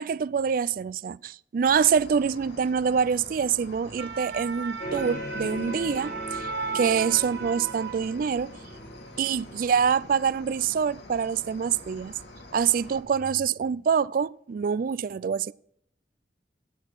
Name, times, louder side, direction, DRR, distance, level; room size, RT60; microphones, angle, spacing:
voice 1, 0.0-6.5 6.7-8.6 9.2-12.1 12.5-15.5, right 7 dB, 50° right, 0.3 m, -25 dB
Cricket, 1.6-13.0, left 1 dB, 80° left, 2.1 m, -47 dB
sound 1, 3.7-8.5 8.9-9.1, right 5 dB, 70° right, 0.8 m, -36 dB
sound 2, 4.8-10.4, equal, 50° left, 1.3 m, -39 dB
10.5 x 9.5 x 4.5 m
head